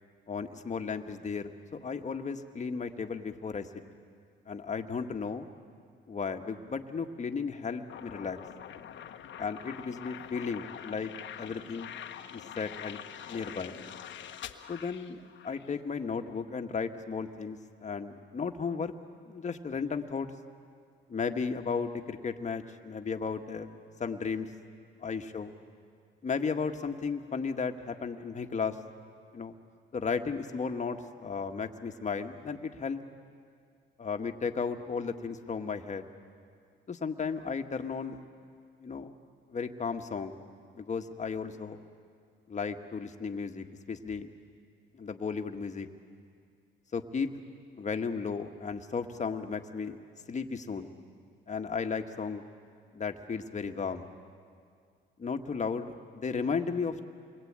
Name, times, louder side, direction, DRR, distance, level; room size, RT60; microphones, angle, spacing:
voice 1, 0.3-1.5 1.8-3.8 4.5-5.5 6.1-8.4 9.4-11.1 11.4-11.9 12.3-13.0 13.3-13.8 14.7-18.9 19.3-20.3 21.1-23.7 24.0-24.5 25.0-25.5 26.2-28.8 29.3-29.5 29.9-33.0 34.0-36.0 36.9-38.2 38.8-39.1 39.5-40.4 40.7-41.8 42.5-44.3 44.9-45.9 46.9-47.3 47.8-50.0 50.3-50.9 51.5-52.4 52.9-54.0 55.2-57.0, left 5 dB, 35° left, 6 dB, 1.7 m, -34 dB
sound 1, 7.9-15.7, left 9 dB, 70° left, 1.3 m, -45 dB
28.5 x 22.0 x 8.9 m, 2.2 s
cardioid pair, 90°, 20 cm